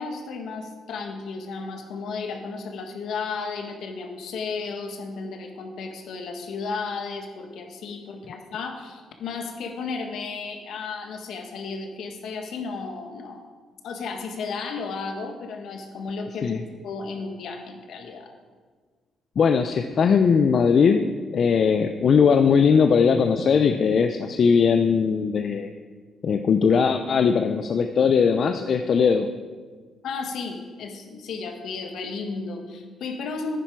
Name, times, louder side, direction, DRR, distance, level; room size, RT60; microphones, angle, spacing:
voice 1, 0.0-13.5 13.8-18.3 30.0-33.6, left 4 dB, 75° left, 4 dB, 1.5 m, -33 dB
voice 2, 19.4-25.7 26.2-29.3, left 6 dB, 55° left, 7 dB, 0.5 m, -19 dB
10.0 x 10.0 x 4.6 m, 1.5 s
cardioid pair, 90°, 0 cm